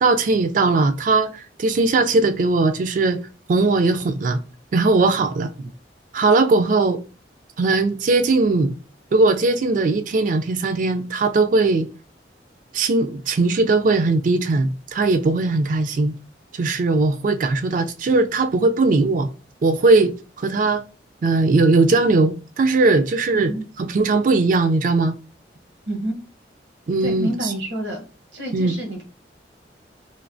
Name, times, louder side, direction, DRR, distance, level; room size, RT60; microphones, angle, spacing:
voice 1, 0.0-3.2 3.5-4.4 4.7-5.7 6.1-7.0 7.6-8.7 9.1-11.9 12.7-16.1 16.5-19.3 19.6-20.8 21.2-23.5 23.8-25.1 26.9-27.3 28.5-28.7, right 3 dB, 45° right, 0.3 m, -19 dB
voice 2, 25.9-26.2 27.0-28.0 28.3-29.0, right 1 dB, 75° right, 1.0 m, -28 dB
3.2 x 2.6 x 2.6 m
head